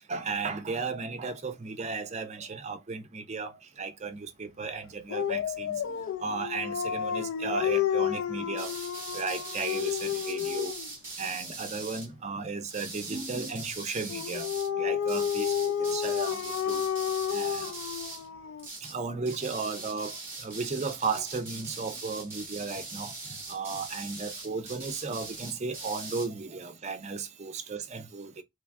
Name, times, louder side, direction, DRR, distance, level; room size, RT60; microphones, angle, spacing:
voice 1, 0.1-3.5 3.8-5.8 6.2-8.7 9.1-10.7 11.2-14.5 14.8-15.5 15.8-16.9 17.3-17.7 18.9-23.1 23.5-28.3, right 4 dB, 30° right, 0.5 m, -35 dB
Dog, 5.1-10.9 14.1-18.7, left 9 dB, 65° left, 0.3 m, -31 dB
sound 1, 8.5-12.1 12.7-14.7 15.1-18.3 18.6-19.0 19.2-26.3, right 3 dB, 10° right, 1.0 m, -41 dB
3.3 x 2.3 x 3.3 m
head